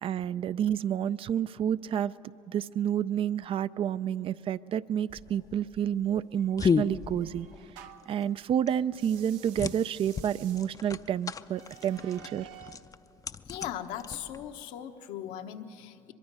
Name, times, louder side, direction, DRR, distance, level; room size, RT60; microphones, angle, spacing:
voice 1, 0.0-2.1 2.5-7.5 8.1-12.5, right 9 dB, 45° right, 16 dB, 0.4 m, -29 dB
sound 1, 5.1-14.6, left 6 dB, 25° left, 0.5 m, -35 dB
sound 2, 6.4-8.2 8.9-12.9, right 11 dB, 85° right, 0.9 m, -52 dB
voice 2, 13.5-16.1, left 10 dB, 80° left, 5 dB, 1.1 m, -39 dB
23.0 x 22.5 x 5.5 m, 2.9 s
supercardioid pair, 90°, 13 cm